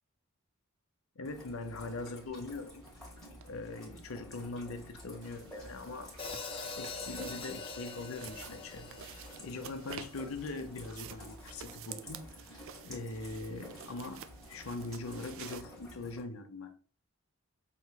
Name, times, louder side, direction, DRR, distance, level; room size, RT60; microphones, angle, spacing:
voice 1, 1.2-2.9 3.4-6.2 6.4-16.8, left 3 dB, 80° left, 0.7 m, -42 dB
Rain, 1.2-16.2, equal, ahead, 1.7 m, -51 dB
sound 1, 2.8-2.9 3.4-3.5 5.2-15.6, right 8 dB, 65° right, 0.4 m, -50 dB
Hi-hat, 6.2-10.4, left 4 dB, 25° left, 0.7 m, -44 dB
5.9 x 3.0 x 2.3 m
head